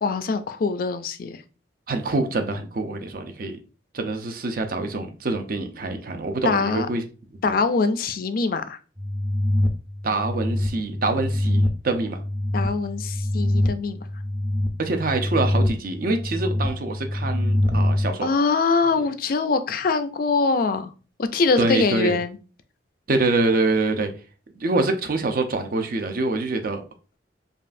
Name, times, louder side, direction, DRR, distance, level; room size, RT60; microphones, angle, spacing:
voice 1, 0.0-1.4 6.4-6.9 7.4-8.8 12.5-14.0 18.2-20.9 21.2-22.4, left 4 dB, 50° left, 10 dB, 0.4 m, -23 dB
voice 2, 1.9-3.6 3.9-7.0 10.0-12.2 14.8-18.3 21.6-22.2 23.1-24.1 24.5-26.8, right 3 dB, 50° right, 6 dB, 0.6 m, -25 dB
sound 1, 9.0-18.1, left 1 dB, 10° right, 0.4 m, -25 dB
5.2 x 2.4 x 2.5 m, 0.35 s
head